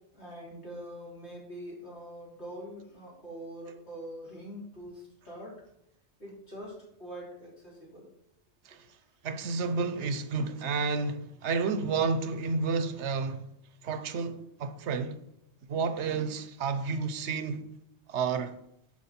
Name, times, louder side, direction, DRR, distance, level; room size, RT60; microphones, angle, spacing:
voice 1, 0.1-5.6 6.2-8.1, equal, 75° left, 3.5 m, -44 dB
voice 2, 9.2-13.4 13.8-15.2 15.7-17.7 18.1-18.6, right 4 dB, 80° right, 1.0 m, -31 dB
11.0 x 4.8 x 4.3 m
omnidirectional pair, 1.2 m